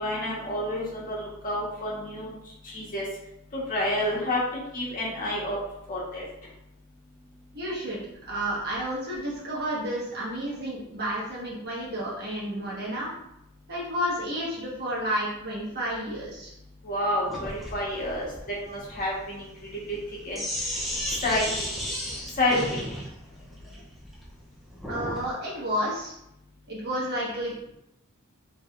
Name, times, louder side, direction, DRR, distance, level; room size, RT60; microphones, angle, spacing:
voice 1, 0.0-2.3 2.6-3.0 3.5-4.4 4.7-5.6 5.9-6.2 16.8-18.3 18.7-19.5 19.9-20.0 20.2-20.4 21.2-21.4 22.4-22.8, left 1 dB, 40° left, -5 dB, 1.3 m, -29 dB
voice 2, 7.5-8.0 8.3-13.1 13.7-16.5 24.9-26.1 26.7-27.7, equal, 50° right, -6 dB, 1.4 m, -31 dB
Sink (filling or washing), 17.3-25.3, equal, ahead, 0.7 m, -34 dB
4.8 x 3.2 x 2.5 m, 0.82 s
head